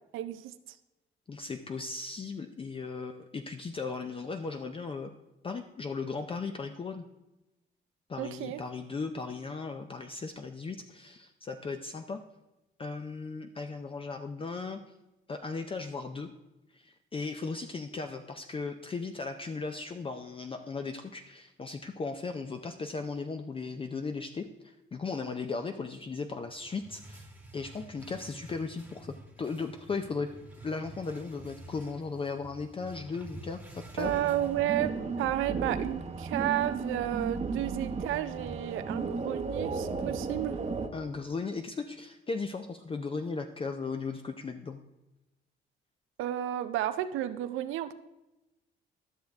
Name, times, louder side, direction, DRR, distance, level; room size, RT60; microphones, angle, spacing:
voice 1, 0.1-0.5 8.2-8.6 34.0-40.6 46.2-47.9, right 13 dB, 90° right, 11 dB, 0.6 m, -32 dB
voice 2, 1.3-5.1 5.4-7.0 8.1-12.2 12.8-14.8 15.3-16.3 16.7-27.3 27.5-30.3 30.6-34.2 40.9-44.8, left 4 dB, 25° left, 7 dB, 0.5 m, -37 dB
sound 1, 26.5-35.1, right 2 dB, 5° right, 1.2 m, -50 dB
sound 2, 34.0-40.9, right 4 dB, 35° right, 0.9 m, -34 dB
12.5 x 6.4 x 3.5 m, 0.98 s
cardioid pair, 90°, 20 cm